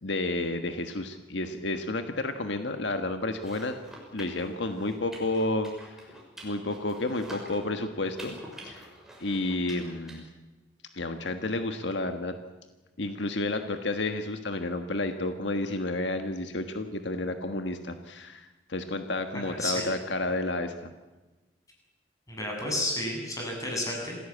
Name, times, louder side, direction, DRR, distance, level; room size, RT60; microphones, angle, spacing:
voice 1, 0.0-3.7 4.1-6.0 6.4-8.9 9.2-10.3 10.9-12.3 13.0-20.9, left 2 dB, 75° left, 7 dB, 1.6 m, -31 dB
sound 1, 3.3-10.2, equal, ahead, 6.2 m, -47 dB
voice 2, 19.3-19.9 22.3-24.2, left 1 dB, 20° left, 0 dB, 7.5 m, -31 dB
27.0 x 17.0 x 8.6 m, 1.2 s
head